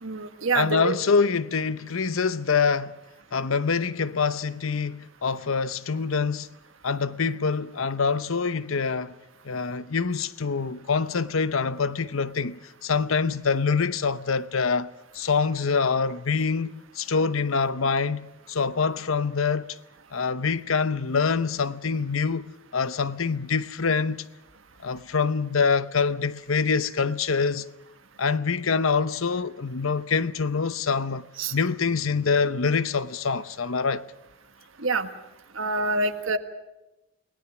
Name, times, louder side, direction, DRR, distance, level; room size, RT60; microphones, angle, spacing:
voice 1, 0.0-0.9 31.4-31.5 34.8-35.1 35.5-36.4, right 3 dB, 75° right, 1.5 m, -26 dB
voice 2, 0.5-2.9 3.3-6.5 6.8-9.1 9.4-19.8 20.1-22.5 22.7-24.3 24.8-27.7 28.2-31.2 31.5-34.0, left 5 dB, 80° left, 0.8 m, -25 dB
30.0 x 19.0 x 6.1 m
head